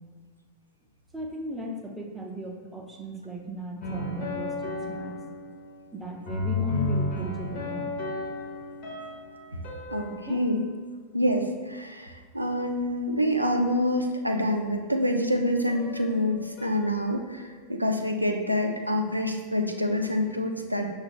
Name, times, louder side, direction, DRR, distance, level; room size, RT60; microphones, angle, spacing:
voice 1, 1.1-5.2 5.9-7.9 10.1-10.4, equal, 5° right, 0 dB, 0.6 m, -36 dB
sound 1, 3.8-6.0 6.3-10.6 15.7-17.7, left 2 dB, 45° left, 0.8 m, -34 dB
voice 2, 9.9-10.6 11.1-20.9, left 1 dB, 90° right, 3 dB, 0.3 m, -27 dB
5.8 x 2.4 x 3.3 m, 1.5 s
figure-of-eight pair, 90°, 0 cm